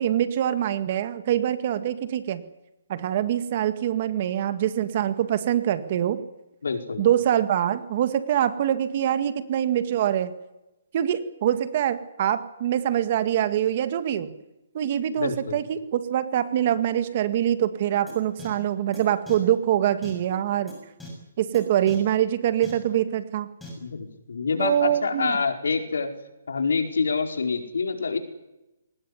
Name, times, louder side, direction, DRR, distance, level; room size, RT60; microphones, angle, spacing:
voice 1, 0.0-2.4 2.9-6.2 7.0-10.3 10.9-14.3 14.7-20.7 21.4-23.5 24.6-25.4, right 11 dB, 35° right, 11 dB, 2.0 m, -24 dB
voice 2, 6.6-7.0 15.1-15.6 23.8-26.1 26.5-28.2, left 4 dB, 85° left, 5 dB, 4.6 m, -26 dB
sound 1, 18.1-18.2 18.4-18.5 18.9-19.0 19.3-19.4 20.0-20.1 20.7-20.8 21.0-21.1 21.5-21.6 21.9-22.0 22.6-22.7 23.6-23.7, left 4 dB, 5° left, 6.8 m, -41 dB
22.5 x 19.5 x 9.7 m, 0.95 s
hypercardioid pair, 165°, 0 cm